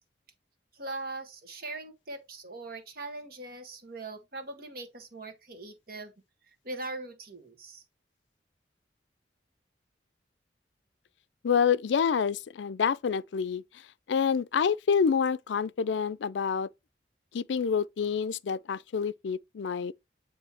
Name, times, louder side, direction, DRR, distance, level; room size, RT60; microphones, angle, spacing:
voice 1, 0.7-6.1 6.6-7.8, right 2 dB, 55° right, 1.6 m, -41 dB
voice 2, 11.4-13.8 14.1-16.7 17.3-19.9, left 6 dB, 85° left, 0.4 m, -27 dB
9.0 x 3.2 x 4.2 m
head